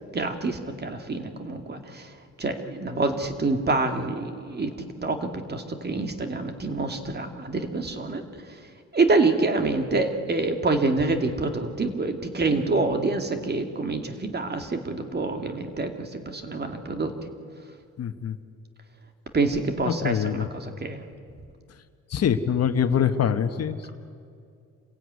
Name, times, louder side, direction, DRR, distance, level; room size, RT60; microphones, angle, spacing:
voice 1, 0.1-2.1 2.4-4.7 5.0-8.2 8.9-17.1 19.3-21.0, right 3 dB, 35° right, 6 dB, 2.5 m, -26 dB
voice 2, 18.0-18.4 19.8-20.5 22.1-23.9, left 8 dB, 55° left, 9 dB, 1.2 m, -24 dB
27.0 x 16.0 x 9.5 m, 2.4 s
cardioid pair, 90°, 30 cm